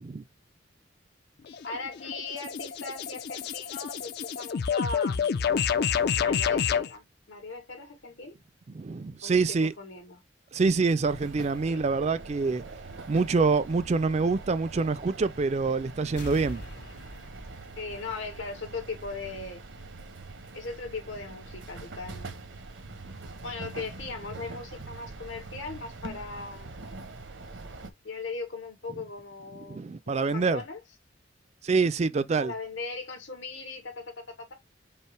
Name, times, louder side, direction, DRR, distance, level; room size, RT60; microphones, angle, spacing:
sound 1, 1.5-6.9, left 7 dB, 55° left, 0.4 m, -28 dB
voice 1, 1.6-5.5 6.2-8.3 9.2-10.2 11.7-11.8 17.8-19.6 20.5-22.4 23.4-26.7 28.0-30.8 32.4-34.5, left 3 dB, 90° left, 2.1 m, -39 dB
voice 2, 8.7-9.7 10.5-12.6 13.1-16.6 29.7-30.6 31.6-32.5, right 4 dB, 35° right, 0.4 m, -26 dB
sound 2, 11.0-27.9, right 3 dB, 80° right, 1.0 m, -43 dB
sound 3, 16.2-18.8 19.1-19.2, left 1 dB, 70° left, 2.2 m, -43 dB
5.5 x 2.1 x 4.4 m
head